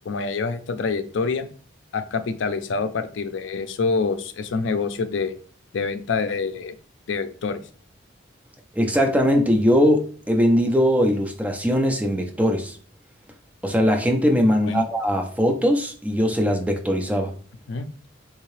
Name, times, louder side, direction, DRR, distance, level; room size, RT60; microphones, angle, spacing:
voice 1, 0.1-1.5 1.9-5.3 5.7-6.8 7.1-7.6 14.6-14.9 17.7-17.9, left 4 dB, 80° left, 10 dB, 0.4 m, -26 dB
voice 2, 8.7-12.8 13.6-17.3, equal, 5° right, 3 dB, 0.4 m, -20 dB
3.5 x 2.8 x 3.1 m, 0.43 s
head